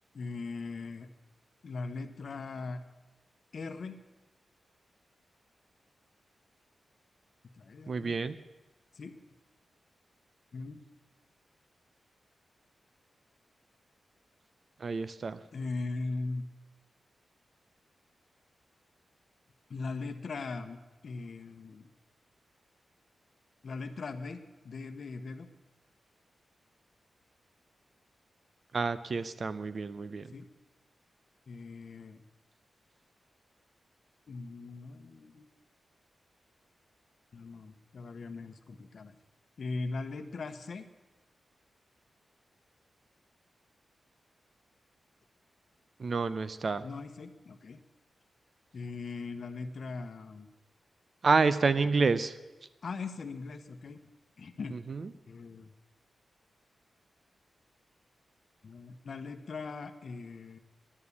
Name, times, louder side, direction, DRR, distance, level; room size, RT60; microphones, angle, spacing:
voice 1, 0.1-1.1 1.6-2.8 3.5-4.0 7.6-8.2 8.9-9.1 10.5-10.8 15.5-16.4 19.7-20.8 21.0-21.9 23.6-25.5 30.3-30.5 31.5-32.2 34.3-35.5 37.3-39.1 39.6-40.8 46.8-47.8 48.7-50.5 52.8-54.0 54.4-54.8 55.3-55.7 58.6-60.6, left 3 dB, 55° left, 9 dB, 0.9 m, -39 dB
voice 2, 7.9-8.4 14.8-15.4 28.7-30.3 46.0-46.8 51.2-52.4 54.7-55.1, right 4 dB, 45° right, 14 dB, 0.5 m, -29 dB
11.0 x 9.2 x 8.3 m, 1.1 s
wide cardioid pair, 140°, 0 cm